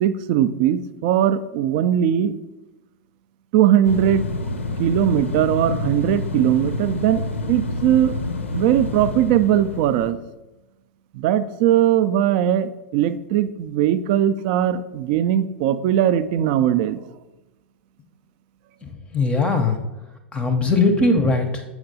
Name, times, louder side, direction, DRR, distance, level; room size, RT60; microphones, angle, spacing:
voice 1, 0.0-2.3 3.5-4.3 4.8-7.2 7.5-8.1 8.5-10.2 11.1-17.0, right 10 dB, 45° right, 13 dB, 0.3 m, -19 dB
sound 1, 3.8-10.1, left 2 dB, 75° left, 0.5 m, -28 dB
voice 2, 18.8-19.8 20.3-21.6, left 3 dB, 15° left, 5 dB, 0.6 m, -20 dB
7.8 x 5.9 x 2.7 m, 1.0 s
figure-of-eight pair, 95°, 7 cm